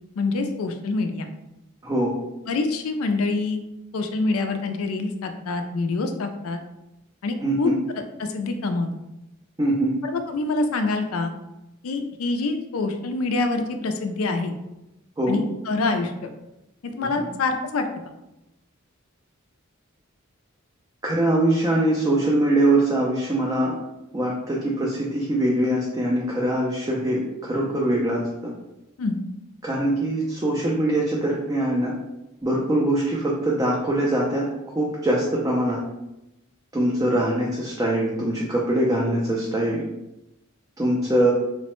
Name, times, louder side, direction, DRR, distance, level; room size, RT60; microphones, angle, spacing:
voice 1, 0.2-1.3 2.5-3.6 3.9-6.6 7.2-7.7 8.2-8.9 10.0-11.3 11.8-14.5 15.3-16.1 16.9-17.9 29.0-29.2, left 3 dB, 80° left, 6 dB, 0.4 m, -25 dB
voice 2, 1.8-2.1 7.4-7.8 9.6-10.0 15.2-15.4 17.2-17.3 21.0-23.7 24.1-28.3 29.6-31.9 32.4-34.5 34.7-35.8 36.7-39.8 40.8-41.3, right 1 dB, 15° right, -4 dB, 0.4 m, -22 dB
3.0 x 2.1 x 2.9 m, 0.92 s
head